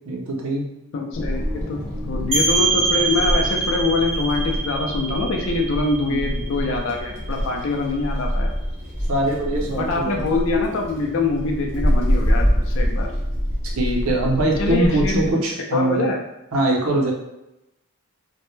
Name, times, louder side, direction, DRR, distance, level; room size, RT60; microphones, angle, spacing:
voice 1, 0.1-0.7 6.0-6.4 9.1-10.2 13.8-16.0 16.5-17.1, right 1 dB, 75° right, -1 dB, 0.6 m, -22 dB
voice 2, 0.9-8.5 9.7-13.1 14.6-15.3 15.7-16.2, left 3 dB, 60° left, 2 dB, 0.4 m, -24 dB
Wind, 1.1-15.3, equal, 30° left, 0.8 m, -26 dB
sound 1, 2.3-7.8, right 3 dB, 30° right, 0.5 m, -25 dB
2.1 x 2.1 x 3.0 m, 0.91 s
head